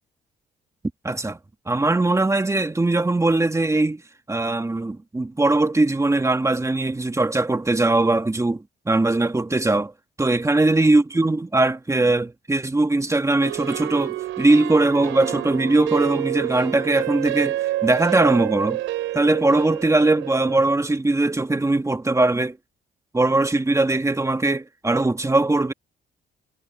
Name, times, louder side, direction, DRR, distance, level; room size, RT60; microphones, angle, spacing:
voice 1, 1.0-1.4 1.7-4.0 4.3-9.9 10.2-18.8 19.1-22.6 23.1-25.7, right 2 dB, 15° right, 1.7 m, -20 dB
sound 1, 13.4-20.7, right 15 dB, 90° right, 5.2 m, -29 dB
cardioid pair, 90°, 20 cm